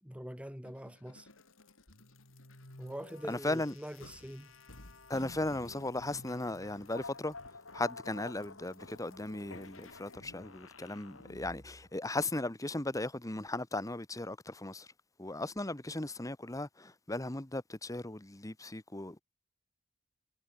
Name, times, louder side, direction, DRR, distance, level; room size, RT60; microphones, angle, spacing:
voice 1, 0.0-1.3 2.8-4.5, equal, 5° right, 2.5 m, -44 dB
sound 1, 0.6-11.9, left 3 dB, 70° left, 4.7 m, -52 dB
voice 2, 3.3-3.7 5.1-7.4 7.7-14.9 15.2-19.2, left 2 dB, 15° left, 1.3 m, -37 dB
head